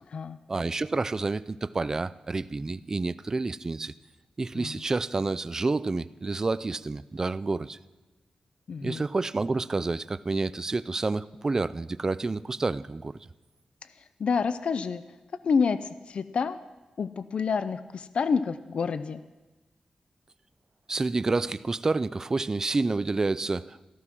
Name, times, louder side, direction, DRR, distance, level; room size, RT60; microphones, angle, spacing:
voice 1, 0.5-3.9 4.4-7.8 8.8-13.3 20.9-23.9, right 3 dB, 25° right, 16 dB, 0.4 m, -29 dB
voice 2, 8.7-9.0 14.2-15.0 15.4-16.6 17.0-19.2, left 5 dB, 60° left, 13 dB, 0.5 m, -28 dB
14.5 x 13.5 x 6.0 m, 1.2 s
wide cardioid pair, 160°, 2 cm